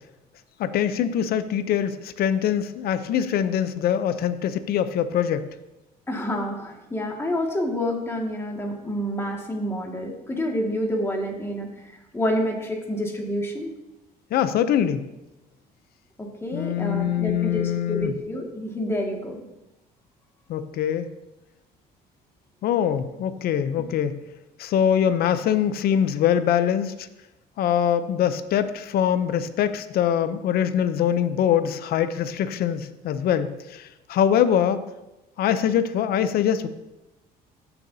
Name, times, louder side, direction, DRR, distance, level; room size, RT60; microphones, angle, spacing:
voice 1, 0.6-5.5 14.3-15.0 16.5-18.1 20.5-21.1 22.6-24.2 24.6-27.1 27.6-34.8 35.4-36.7, left 9 dB, 65° left, 11 dB, 0.6 m, -23 dB
voice 2, 6.1-13.7 16.2-19.4, equal, 15° left, 0 dB, 2.0 m, -28 dB
15.5 x 7.0 x 2.8 m, 0.98 s
cardioid pair, 110°, 17 cm